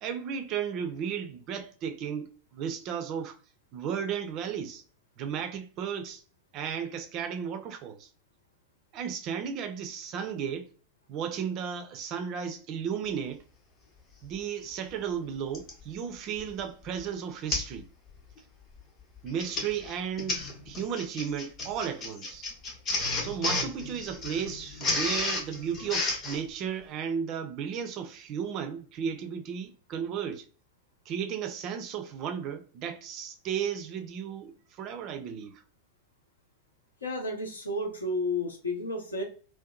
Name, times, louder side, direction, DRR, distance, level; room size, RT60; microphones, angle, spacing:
voice 1, 0.0-3.4 3.7-4.8 5.2-6.2 6.5-8.1 8.9-10.7 11.1-13.4 14.2-17.9 19.2-22.5 23.1-30.4 31.1-35.6, right 7 dB, 40° right, 0.4 m, -34 dB
Printer, 14.4-14.5 15.5-15.8 16.4-16.6 16.9-17.0 17.5-17.8 18.1-18.4 19.2-26.4, left 3 dB, 30° left, 0.7 m, -32 dB
voice 2, 37.0-39.2, left 2 dB, 75° left, 0.7 m, -32 dB
2.6 x 2.1 x 2.3 m
figure-of-eight pair, 90°, 0 cm